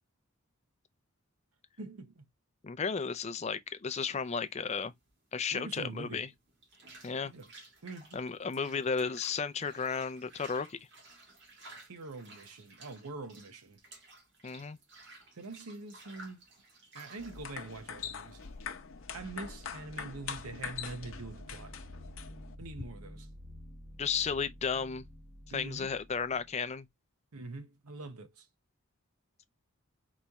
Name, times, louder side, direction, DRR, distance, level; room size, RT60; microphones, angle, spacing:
voice 1, 1.8-2.3 5.5-6.3 7.2-7.5 7.8-8.2 11.8-13.8 15.3-16.4 16.9-18.4 19.1-21.8 22.6-23.3 25.5-25.9 27.3-28.5, right 3 dB, 85° right, 0.8 m, -44 dB
voice 2, 2.6-4.9 5.3-6.3 7.0-7.3 8.1-10.8 14.4-14.8 24.0-25.1 25.5-26.9, left 5 dB, 30° left, 0.4 m, -34 dB
sound 1, 4.0-18.8, right 2 dB, 50° right, 1.8 m, -55 dB
sound 2, 17.2-22.5, left 7 dB, 60° left, 0.7 m, -43 dB
sound 3, 19.0-26.7, left 1 dB, ahead, 0.9 m, -51 dB
4.2 x 3.1 x 3.4 m
head